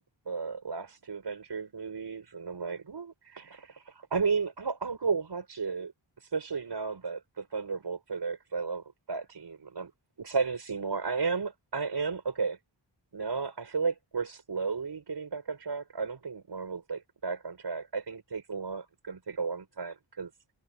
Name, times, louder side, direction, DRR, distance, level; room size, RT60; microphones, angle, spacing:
voice 1, 0.3-5.9 6.2-9.9 10.2-12.6 13.1-20.3, right 5 dB, 60° right, 5.7 m, -34 dB
wide cardioid pair, 70°, 46 cm